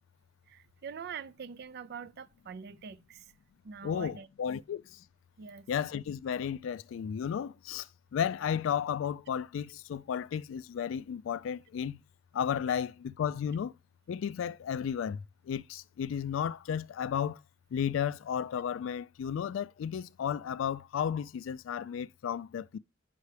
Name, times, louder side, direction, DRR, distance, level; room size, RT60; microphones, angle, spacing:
voice 1, 0.5-3.3 3.6-4.3 5.4-5.7, right 6 dB, 55° right, 0.4 m, -44 dB
voice 2, 3.8-5.0 5.7-12.0 12.3-13.7 14.1-17.4 17.7-22.8, left 8 dB, 80° left, 0.3 m, -33 dB
9.4 x 5.5 x 3.3 m
head